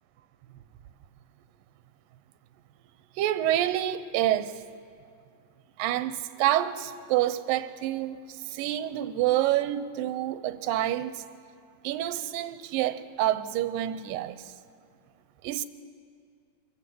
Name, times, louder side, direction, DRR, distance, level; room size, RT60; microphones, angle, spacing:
voice 1, 3.2-4.5 5.8-8.2 8.5-11.2 11.8-14.4 15.4-15.6, right 13 dB, 80° right, 12 dB, 2.5 m, -27 dB
26.0 x 16.0 x 7.7 m, 2.3 s
omnidirectional pair, 4.0 m